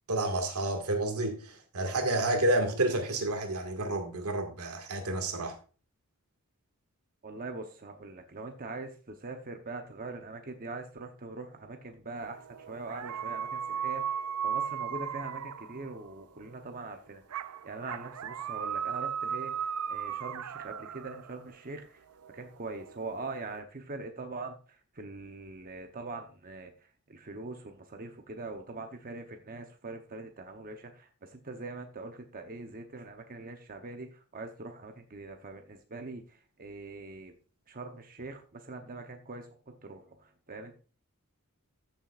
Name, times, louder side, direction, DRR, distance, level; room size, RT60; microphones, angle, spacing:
voice 1, 0.1-5.6, right 1 dB, 90° right, 2.0 m, -30 dB
voice 2, 7.2-22.0 22.3-37.3 37.7-40.8, right 3 dB, 40° right, 0.9 m, -43 dB
sound 1, 12.2-16.2 17.3-21.5 22.1-23.6, right 8 dB, 75° right, 0.5 m, -36 dB
14.0 x 7.3 x 2.5 m
head